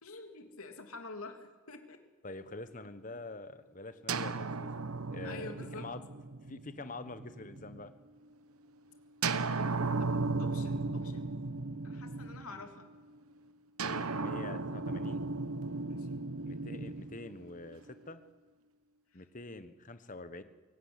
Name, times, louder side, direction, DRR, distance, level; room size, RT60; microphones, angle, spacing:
voice 1, 0.0-2.0 3.1-3.2 5.2-5.9 10.0-11.4 11.8-12.9 15.9-16.2 19.1-19.2, left 3 dB, 80° left, 5 dB, 3.1 m, -48 dB
voice 2, 2.2-6.0 6.5-7.9 12.5-12.7 13.8-15.2 16.4-18.2 19.1-20.4, left 2 dB, 35° left, 11 dB, 1.3 m, -46 dB
sound 1, 4.1-7.9 9.2-12.8 13.8-17.9, right 3 dB, 80° right, 1.1 m, -36 dB
23.5 x 17.5 x 9.8 m, 1.3 s
head